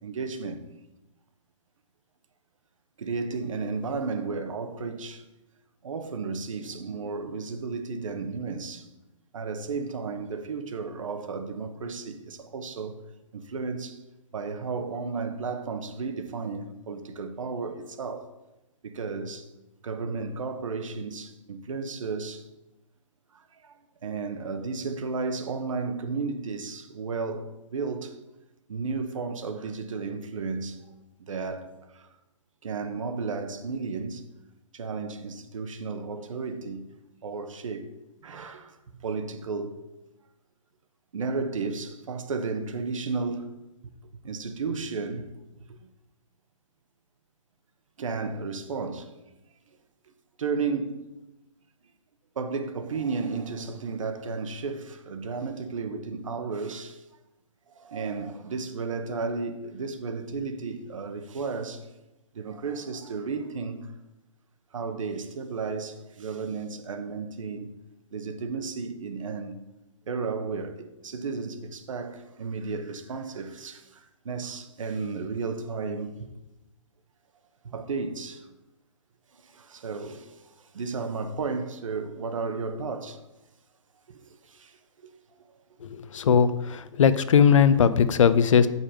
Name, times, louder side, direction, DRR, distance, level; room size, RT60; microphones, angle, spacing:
voice 1, 0.0-0.6 3.0-5.2 5.8-8.9 9.3-13.0 13.3-14.0 14.3-18.3 18.8-19.5 19.8-22.5 23.3-23.7 24.0-28.2 28.7-30.9 31.3-32.1 32.6-34.2 34.7-36.9 37.2-37.9 38.2-39.8 41.1-43.5 44.2-45.3 45.6-45.9 48.0-49.1 50.4-51.0 52.3-57.0 57.7-61.9 62.3-63.9 64.7-67.7 68.1-69.6 70.1-76.3 77.6-78.5 79.3-83.2 84.1-85.1 87.7-87.9, right 4 dB, 80° right, 1.1 m, -33 dB
voice 2, 86.1-88.7, left 7 dB, 75° left, 0.6 m, -19 dB
7.2 x 5.5 x 5.0 m
hypercardioid pair, 155°, 16 cm